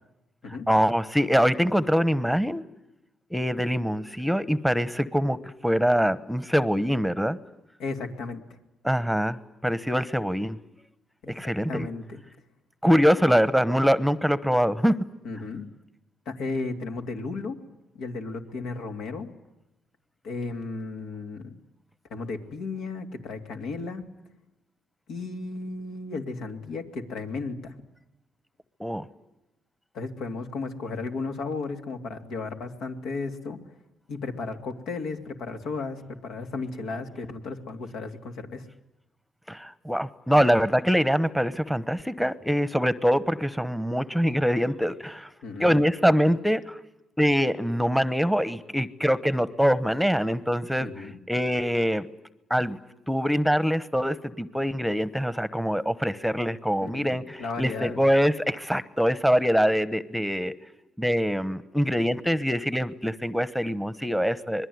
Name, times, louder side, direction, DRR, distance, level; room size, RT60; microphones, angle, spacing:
voice 1, 0.7-2.6 3.3-7.4 8.8-9.4 9.6-10.6 11.3-11.9 12.8-15.0 28.8-29.0 39.5-45.3 45.6-46.8 47.2-52.1 52.5-52.8 53.1-60.5 61.0-64.7, equal, ahead, 15 dB, 1.0 m, -24 dB
voice 2, 7.8-8.4 11.2-12.2 15.2-15.7 16.3-17.6 17.9-19.3 20.2-21.6 22.1-24.0 25.1-27.7 29.9-33.6 34.1-38.7 45.4-45.8 50.8-51.2 56.8-58.0, left 3 dB, 85° left, 5 dB, 2.8 m, -34 dB
26.0 x 21.5 x 9.5 m, 0.92 s
cardioid pair, 90°, 0 cm